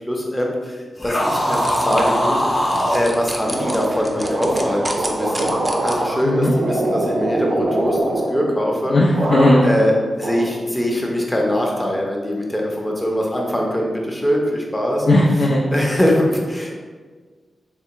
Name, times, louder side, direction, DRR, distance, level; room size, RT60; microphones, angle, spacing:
voice 1, 0.1-2.4 2.9-5.5 5.8-9.0 9.6-15.1 15.7-16.7, equal, 15° left, -1 dB, 0.7 m, -22 dB
sound 1, 1.0-3.1, equal, 40° left, 0.9 m, -20 dB
sound 2, 1.2-6.2, right 1 dB, 20° right, 0.5 m, -33 dB
sound 3, 3.5-8.8 9.1-9.9 10.2-11.1, right 1 dB, 65° right, 0.6 m, -24 dB
voice 2, 8.9-9.7 15.1-15.6, left 1 dB, 70° left, -5 dB, 0.5 m, -16 dB
3.4 x 3.3 x 2.9 m, 1.5 s
wide cardioid pair, 90°, 0 cm